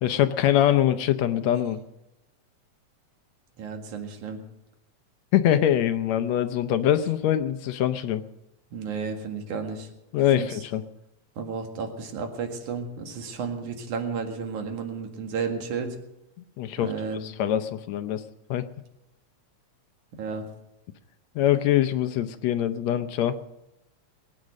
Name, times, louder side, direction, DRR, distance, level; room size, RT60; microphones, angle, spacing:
voice 1, 0.0-1.8 5.3-8.2 10.1-10.8 16.6-16.9 17.2-18.2 18.5-18.6 21.4-23.4, left 11 dB, 75° left, 11 dB, 1.9 m, -23 dB
voice 2, 3.6-4.4 8.7-9.9 10.4-10.6 11.4-16.0 16.8-17.3 20.1-20.4, right 5 dB, 80° right, 4 dB, 3.3 m, -32 dB
21.0 x 9.7 x 6.5 m, 0.88 s
omnidirectional pair, 3.4 m